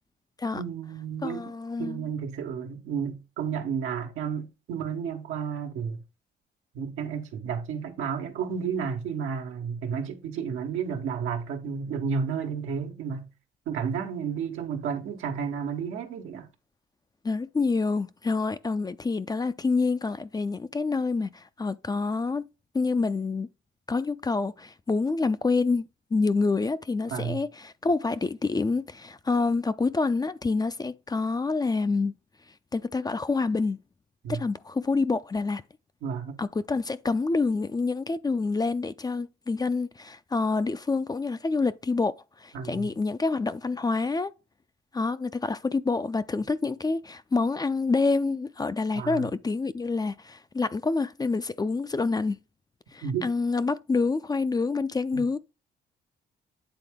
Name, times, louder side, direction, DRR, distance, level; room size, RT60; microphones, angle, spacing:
voice 1, 0.5-1.5 1.8-6.0 6.7-13.3 13.7-16.5 27.1-27.4 34.2-34.4 36.0-36.4 42.5-42.9 48.9-49.3 53.0-53.3 55.1-55.2, right 6 dB, 90° right, 1.3 m, -32 dB
voice 2, 1.2-2.0 17.2-22.5 22.7-23.5 23.9-32.1 32.7-33.8 34.3-35.6 36.4-44.3 44.9-52.4 52.9-55.4, left 3 dB, 20° left, 0.4 m, -27 dB
9.0 x 3.8 x 3.5 m
cardioid pair, 90°, 20 cm